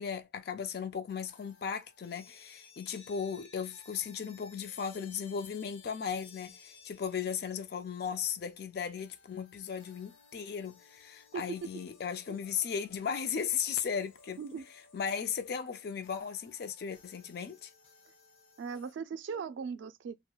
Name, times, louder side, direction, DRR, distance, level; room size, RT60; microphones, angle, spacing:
voice 1, 0.0-14.4 14.9-17.7, left 7 dB, 55° left, 0.3 m, -36 dB
sound 1, 1.1-18.9, left 4 dB, 70° left, 1.0 m, -59 dB
voice 2, 11.3-11.7 12.3-12.4 14.4-14.7 18.6-20.2, right 6 dB, 75° right, 0.3 m, -39 dB
2.9 x 2.0 x 2.3 m
head